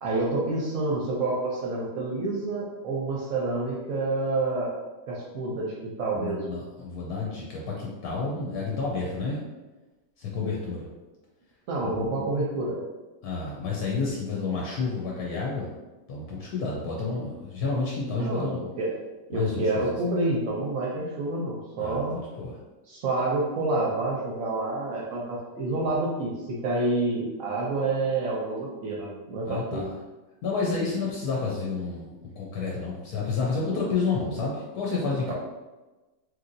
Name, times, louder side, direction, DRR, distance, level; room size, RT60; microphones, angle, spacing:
voice 1, 0.0-4.7 5.1-6.5 11.7-12.8 18.2-18.9 19.3-22.2 22.9-29.9 35.3-35.4, right 2 dB, 65° right, -4 dB, 0.9 m, -28 dB
voice 2, 6.2-9.4 10.2-10.9 11.8-12.1 13.2-15.7 16.1-18.6 19.3-20.0 21.8-22.1 22.4-22.6 29.4-29.9 30.4-35.3, left 4 dB, 75° left, -3 dB, 1.0 m, -30 dB
3.1 x 2.7 x 2.5 m, 1.2 s
omnidirectional pair, 1.7 m